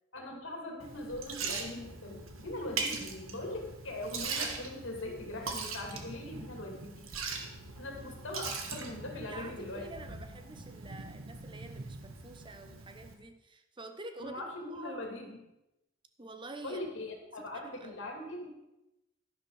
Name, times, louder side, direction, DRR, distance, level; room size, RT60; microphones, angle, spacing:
voice 1, 0.1-7.0 7.8-9.9 14.2-15.4 16.6-18.5, left 1 dB, 65° left, 2 dB, 2.7 m, -41 dB
Liquid, 0.8-13.1, right 4 dB, 80° right, 1.7 m, -41 dB
sound 1, 5.7-7.3 8.3-9.8 10.2-12.5, right 2 dB, 50° right, 0.6 m, -49 dB
voice 2, 9.3-15.0 16.2-16.8 17.3-18.0, right 2 dB, 25° right, 7 dB, 0.9 m, -47 dB
11.5 x 11.5 x 4.9 m, 0.93 s
head